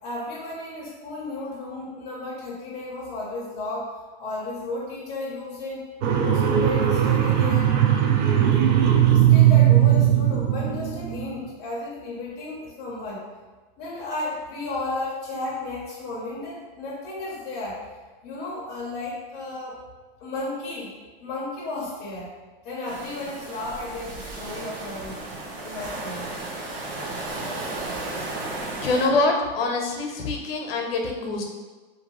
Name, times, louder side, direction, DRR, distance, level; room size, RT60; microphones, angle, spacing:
voice 1, 0.0-5.8 6.2-7.8 9.1-13.2 13.8-17.8 18.2-19.8 20.2-20.9 21.2-22.3 22.6-25.2 25.6-26.3, left 2 dB, 25° left, -5 dB, 0.6 m, -33 dB
sound 1, 6.0-11.3, right 10 dB, 55° right, 0.4 m, -19 dB
sound 2, 22.8-29.1, right 2 dB, 75° right, 0.9 m, -34 dB
voice 2, 28.7-31.4, left 3 dB, 80° left, 2 dB, 0.7 m, -25 dB
2.6 x 2.6 x 2.9 m, 1.3 s
supercardioid pair, 155°, 29 cm